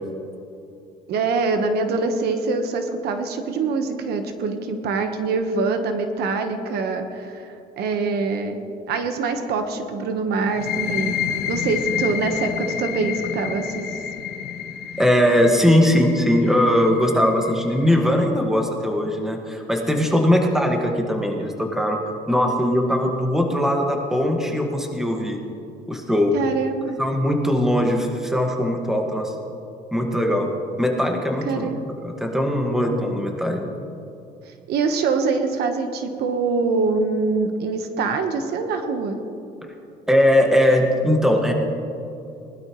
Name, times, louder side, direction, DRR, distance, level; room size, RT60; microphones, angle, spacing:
voice 1, 1.1-8.6 8.9-11.2 11.5-13.9 26.3-27.0 31.4-31.8 34.5-39.2, right 4 dB, 70° right, 6 dB, 1.3 m, -24 dB
sound 1, 10.5-17.9, left 9 dB, 75° left, 1.1 m, -29 dB
voice 2, 15.0-22.0 22.3-25.4 25.9-26.3 27.0-29.3 29.9-30.5 30.8-31.7 32.0-33.6 40.1-41.5, left 1 dB, 5° right, 2 dB, 1.7 m, -20 dB
20.0 x 12.0 x 3.2 m, 2.7 s
cardioid pair, 110°, 17 cm